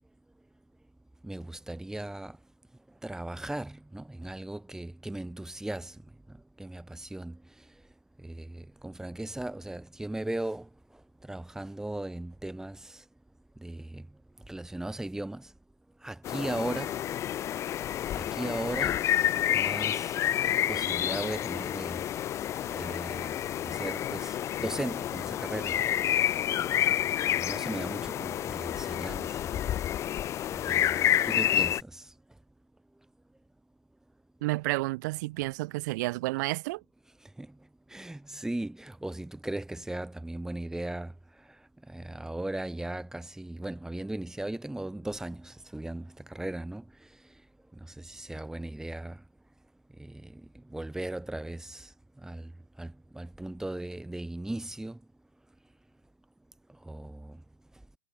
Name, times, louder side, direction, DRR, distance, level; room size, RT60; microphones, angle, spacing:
voice 1, 1.2-2.4 3.0-5.9 6.3-7.4 8.2-10.7 11.3-12.9 13.6-14.0 14.5-15.5 16.0-16.9 18.2-19.0 19.5-20.1 20.7-22.0 22.7-23.3 23.6-25.9 27.3-29.4 30.7-32.0 37.4-37.5 37.9-41.1 41.9-46.8 48.0-49.2 50.0-50.4 50.7-51.9 52.2-52.5 52.8-55.0 56.9-57.3, right 1 dB, 5° right, 7.9 m, -37 dB
sound 1, 16.2-31.8, left 11 dB, 20° left, 0.6 m, -29 dB
voice 2, 34.4-36.8, right 21 dB, 45° right, 1.1 m, -30 dB
figure-of-eight pair, 100°, 13 cm